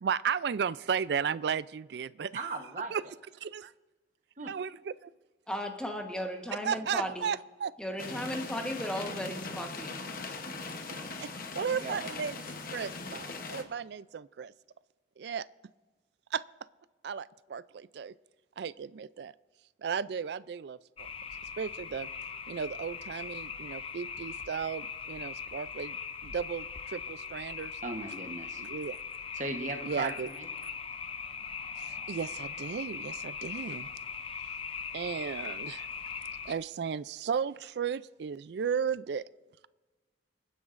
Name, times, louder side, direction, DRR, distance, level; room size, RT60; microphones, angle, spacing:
voice 1, 0.0-2.5 2.9-3.0 3.4-3.7 4.5-5.1 6.6-7.7 11.2-12.4 12.7-14.5 15.2-15.5 16.3-16.4 17.0-18.1 18.6-19.3 19.8-21.1 21.6-22.1 22.5-27.8 28.6-29.0 29.8-30.3 31.8-33.9 34.9-35.9 36.4-39.2, right 7 dB, 65° right, 18 dB, 0.3 m, -35 dB
voice 2, 2.3-2.9 4.4-4.5 6.7-6.8 11.6-12.0 27.8-28.6 29.4-30.5, right 3 dB, 40° right, 5 dB, 1.0 m, -37 dB
voice 3, 5.5-7.3 7.8-9.9, equal, 5° left, 3 dB, 1.1 m, -36 dB
sound 1, 8.0-13.6, left 3 dB, 50° left, 0.9 m, -40 dB
sound 2, 21.0-36.5, left 6 dB, 30° left, 0.5 m, -40 dB
26.5 x 10.0 x 2.5 m, 1.3 s
head